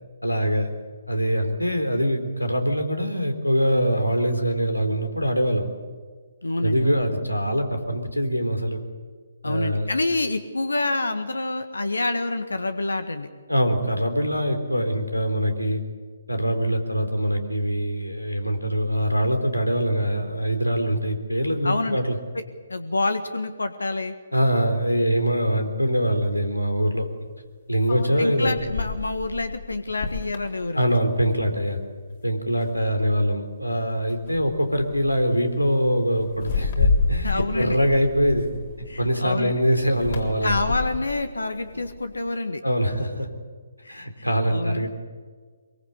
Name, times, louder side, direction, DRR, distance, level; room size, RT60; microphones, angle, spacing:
voice 1, 0.2-0.7 1.1-5.7 6.6-8.8 9.4-9.9 13.5-15.8 16.3-22.2 24.3-27.1 27.7-28.6 30.7-31.8 32.2-38.5 38.8-40.7 42.6-43.3 43.9-44.9, equal, 90° left, 6 dB, 3.8 m, -23 dB
voice 2, 6.4-7.0 9.4-13.3 21.6-22.0 22.7-24.1 28.2-31.0 37.2-37.8 38.9-39.6 40.4-42.6 43.8-44.8, left 2 dB, 70° left, 9 dB, 1.6 m, -27 dB
sound 1, 25.6-25.7 27.8-31.5 31.8-32.1 32.6-33.2 34.1-34.3 34.6-34.9 36.3-38.9 39.9-42.3, left 4 dB, 40° left, 3.7 m, -29 dB
sound 2, 34.0-39.1, left 3 dB, 25° left, 1.9 m, -42 dB
23.5 x 23.0 x 8.3 m, 1.5 s
figure-of-eight pair, 135°, 0 cm